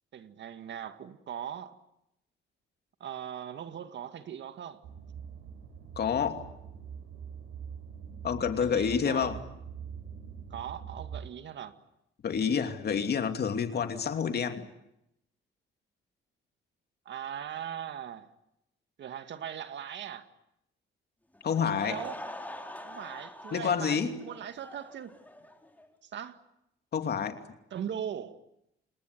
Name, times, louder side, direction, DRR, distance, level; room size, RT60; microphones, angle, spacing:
voice 1, 0.1-1.7 3.0-4.8 8.6-9.4 10.5-11.7 17.1-18.3 19.0-20.3 21.8-22.2 22.8-25.2 26.1-26.4 27.7-28.4, right 9 dB, 65° right, 9 dB, 2.1 m, -39 dB
sound 1, 4.8-11.2, right 7 dB, 85° right, 5.1 m, -44 dB
voice 2, 6.0-6.5 8.2-9.4 12.2-14.7 21.4-22.0 23.5-24.1 26.9-27.4, left 7 dB, 55° left, 7 dB, 2.8 m, -28 dB
Laughter / Crowd, 21.3-25.9, left 1 dB, 10° left, 4.4 m, -44 dB
29.0 x 19.5 x 9.6 m, 0.82 s
cardioid pair, 90°, 20 cm